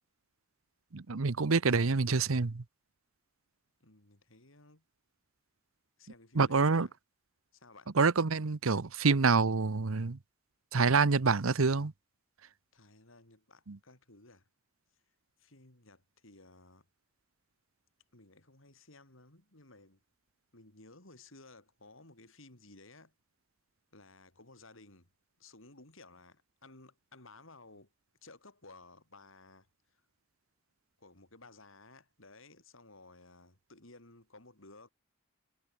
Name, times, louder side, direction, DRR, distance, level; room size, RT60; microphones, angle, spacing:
voice 1, 0.9-2.6 6.4-6.9 8.0-10.2 10.7-11.9 13.7-13.8, right 4 dB, 90° right, 0.9 m, -27 dB
voice 2, 3.8-4.8 6.0-6.9 7.5-7.9 12.7-14.5 15.4-16.9 18.1-20.0 20.5-23.1 23.9-25.1 25.4-27.9 28.2-29.7 29.9-30.0 31.0-34.9, left 2 dB, 75° left, 5.0 m, -57 dB
head